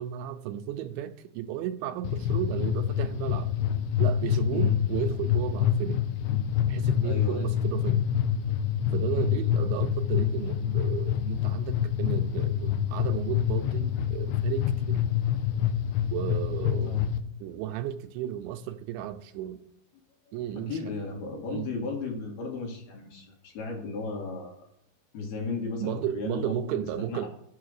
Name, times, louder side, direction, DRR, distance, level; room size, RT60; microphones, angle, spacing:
voice 1, 0.0-3.5 4.0-6.0 6.7-8.0 8.9-15.0 16.1-17.0 17.4-19.6 20.3-20.8 21.5-21.7 25.8-27.3, right 11 dB, 80° right, 7 dB, 2.8 m, -34 dB
sound 1, 2.0-17.2, left 10 dB, 80° left, 2.9 m, -27 dB
voice 2, 7.0-7.6 9.1-9.3 16.8-17.1 20.5-24.5 25.1-27.3, left 3 dB, 60° left, 0 dB, 3.4 m, -35 dB
10.0 x 7.7 x 6.5 m, 0.76 s
omnidirectional pair, 5.4 m